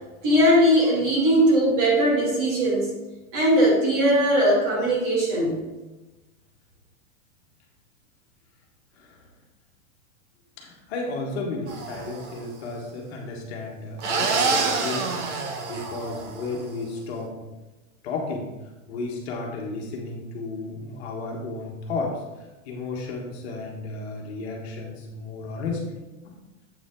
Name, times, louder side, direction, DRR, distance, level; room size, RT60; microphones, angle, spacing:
voice 1, 0.2-2.9 3.3-5.6, equal, 35° right, -3 dB, 2.4 m, -20 dB
voice 2, 10.6-15.1 15.7-17.3 18.0-18.5 18.9-22.2 22.6-26.0 26.2-26.3, left 3 dB, 50° left, 0 dB, 1.4 m, -33 dB
sound 1, 11.7-12.4 14.0-16.6, right 4 dB, 55° right, 1.3 m, -27 dB
7.9 x 5.1 x 3.8 m, 1.1 s
supercardioid pair, 160°, 41 cm